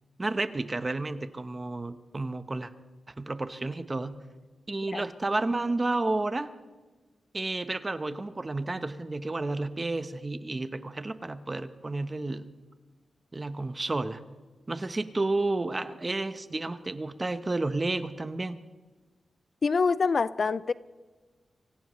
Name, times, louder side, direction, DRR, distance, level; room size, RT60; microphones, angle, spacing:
voice 1, 0.2-2.7 3.2-4.2 4.7-6.5 7.3-12.5 13.3-14.2 14.7-18.6, right 2 dB, 25° right, 11 dB, 0.9 m, -31 dB
voice 2, 19.6-20.7, left 4 dB, 50° left, 17 dB, 0.4 m, -25 dB
25.0 x 16.5 x 3.2 m, 1.3 s
wide cardioid pair, 95°, 0 cm